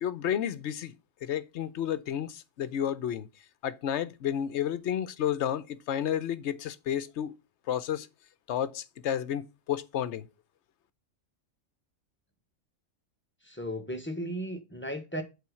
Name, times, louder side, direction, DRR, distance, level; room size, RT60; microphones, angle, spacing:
voice 1, 0.0-0.9 1.2-3.3 3.6-7.3 7.7-8.1 8.5-10.2, left 10 dB, 65° left, 1.0 m, -31 dB
voice 2, 13.4-15.2, equal, 10° left, 1.2 m, -35 dB
8.6 x 3.9 x 6.2 m
omnidirectional pair, 1.3 m